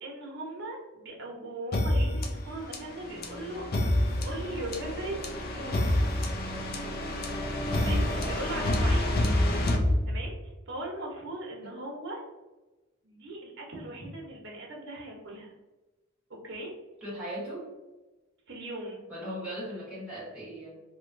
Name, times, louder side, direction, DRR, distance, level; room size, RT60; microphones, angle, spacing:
voice 1, 0.0-3.6 4.2-5.2 5.5-5.9 7.8-9.2 10.1-10.3 10.7-12.2 13.0-15.5 16.4-16.7 18.5-19.0, right 1 dB, 60° right, -1 dB, 0.9 m, -39 dB
sound 1, 1.7-10.6, left 1 dB, 50° left, 0.5 m, -28 dB
voice 2, 7.6-8.0 11.6-11.7 17.0-17.7 19.1-20.8, equal, 5° right, -9 dB, 1.0 m, -38 dB
2.9 x 2.2 x 2.5 m, 1.1 s
head